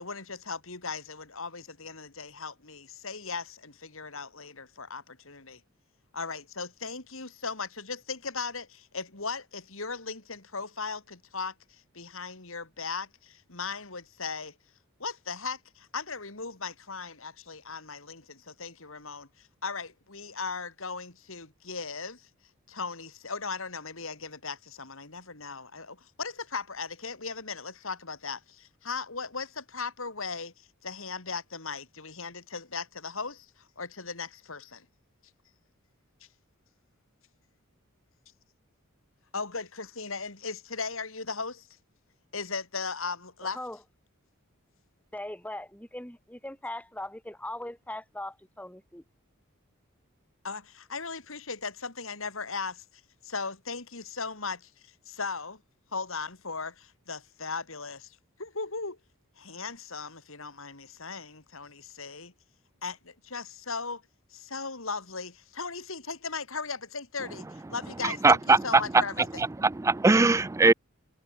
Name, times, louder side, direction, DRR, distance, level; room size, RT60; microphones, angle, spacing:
voice 1, 0.0-5.6 6.1-11.5 11.9-14.5 15.0-22.3 22.7-33.5 33.8-34.8 39.3-41.7 42.3-43.6 50.4-52.8 53.2-55.6 55.9-59.0 59.4-62.3 62.8-64.0 64.3-69.5, left 4 dB, 65° left, 3.2 m, -37 dB
voice 2, 43.4-43.8 45.1-49.0, left 1 dB, 5° left, 2.0 m, -40 dB
voice 3, 68.2-68.6 69.4-70.7, right 3 dB, 15° right, 0.3 m, -20 dB
head